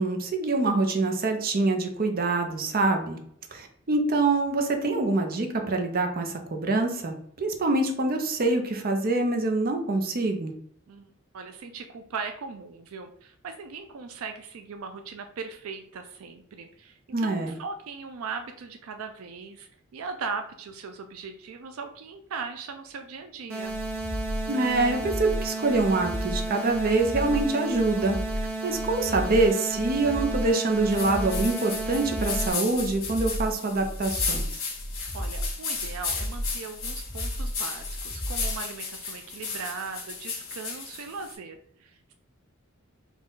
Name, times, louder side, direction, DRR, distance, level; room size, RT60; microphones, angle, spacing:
voice 1, 0.0-3.2 3.5-10.5 17.1-17.5 24.5-28.2 28.6-34.4, right 2 dB, 45° right, 4 dB, 0.7 m, -25 dB
voice 2, 10.9-23.8 35.1-42.1, right 5 dB, 85° right, 6 dB, 0.4 m, -39 dB
sound 1, 23.5-32.5, right 2 dB, 70° right, 1.0 m, -33 dB
sound 2, 23.6-38.6, equal, 5° left, 0.4 m, -34 dB
sound 3, 30.9-41.3, left 5 dB, 70° left, 1.6 m, -34 dB
4.2 x 2.4 x 3.7 m, 0.65 s
head